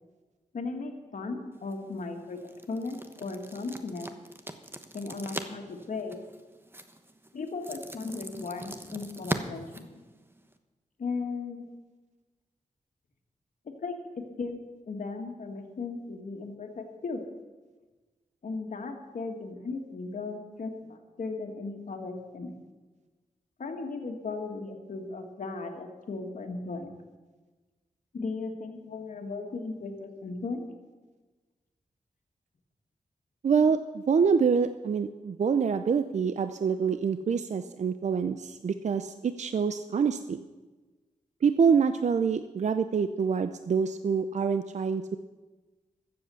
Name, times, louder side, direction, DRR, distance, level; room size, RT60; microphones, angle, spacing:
voice 1, 0.5-2.4 2.7-4.1 4.9-6.3 7.3-9.9 11.0-11.6 13.8-13.9 14.4-14.6 14.9-17.2 18.4-22.5 23.6-26.9 28.1-30.7, left 3 dB, 70° left, 4 dB, 1.8 m, -36 dB
sound 1, 1.5-10.6, right 1 dB, 15° right, 1.0 m, -41 dB
voice 2, 33.4-40.4 41.4-45.2, right 6 dB, 60° right, 10 dB, 0.5 m, -26 dB
14.0 x 7.8 x 7.0 m, 1.3 s
wide cardioid pair, 80°, 14 cm